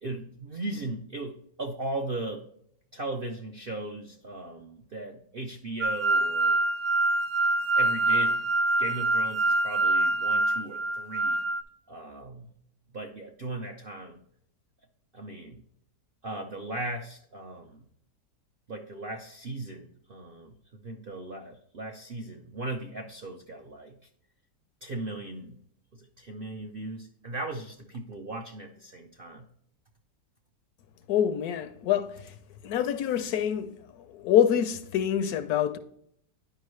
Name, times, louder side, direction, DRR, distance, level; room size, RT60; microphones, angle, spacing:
voice 1, 0.0-2.5 2.9-6.6 7.7-8.5 8.8-11.4 11.9-12.5 12.9-14.2 15.1-15.6 16.2-17.8 18.7-20.5 20.8-24.0 24.8-25.6 25.9-29.5, right 2 dB, 60° right, 0.5 m, -37 dB
sound 1, 5.8-11.6, right 2 dB, 80° right, 1.3 m, -25 dB
voice 2, 31.1-32.3 32.6-35.8, left 9 dB, 70° left, 1.0 m, -26 dB
10.5 x 5.2 x 3.1 m
omnidirectional pair, 1.8 m